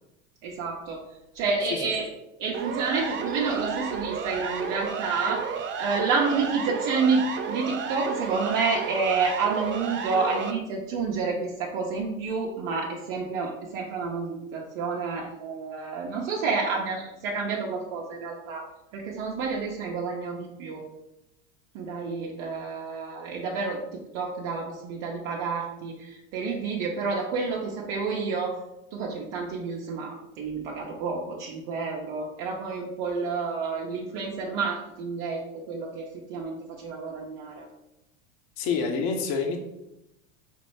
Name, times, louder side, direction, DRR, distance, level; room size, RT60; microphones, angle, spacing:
voice 1, 0.4-1.0 1.3-2.1 2.4-5.4 5.8-18.7 18.9-20.8 21.7-23.8 24.1-28.6 28.9-35.4 35.7-37.7, right 4 dB, 50° right, -3 dB, 0.9 m, -29 dB
Siren, 2.5-10.5, right 6 dB, 30° right, 0.5 m, -32 dB
voice 2, 38.6-39.6, left 5 dB, 50° left, 3 dB, 0.8 m, -27 dB
5.3 x 2.0 x 4.6 m, 0.89 s
hypercardioid pair, 90°, 41 cm